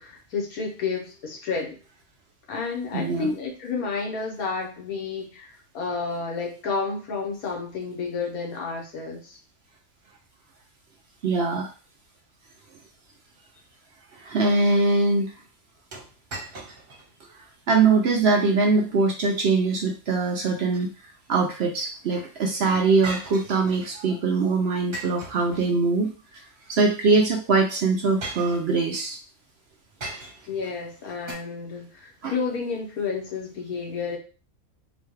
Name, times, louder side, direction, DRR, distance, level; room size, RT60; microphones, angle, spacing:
voice 1, 0.0-1.8 2.5-9.4 30.5-34.2, left 4 dB, 90° left, -1 dB, 1.5 m, -31 dB
voice 2, 2.9-3.3 11.2-11.7 14.1-15.3 17.7-20.9 21.3-26.1 26.7-29.2 32.2-32.3, right 3 dB, 60° right, 2 dB, 0.7 m, -22 dB
sound 1, 15.9-17.1 17.5-17.6 18.2-18.5 20.4-21.3 23.0-24.0 24.9-26.1 27.2-27.4 28.2-29.1 30.0-30.6 31.3-31.4, right 2 dB, 45° right, 1.2 m, -39 dB
4.0 x 2.3 x 3.1 m, 0.35 s
omnidirectional pair, 1.5 m